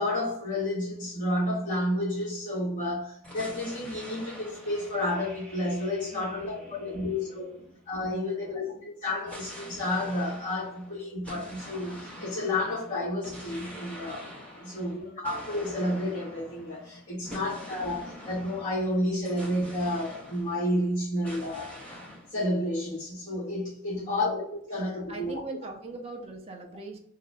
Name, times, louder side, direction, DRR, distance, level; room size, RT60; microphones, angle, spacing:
voice 1, 0.0-7.5 7.9-21.8 22.3-24.4 24.7-25.4, left 1 dB, 35° left, 1.4 m, -31 dB
sound 1, 3.2-7.9 9.2-20.9 21.2-22.3, equal, 5° left, 1.4 m, -45 dB
voice 2, 6.1-7.7 8.0-8.8 14.6-15.2 17.1-17.7 23.9-24.3 24.7-27.0, right 3 dB, 30° right, 0.5 m, -44 dB
2.8 x 2.8 x 3.3 m
head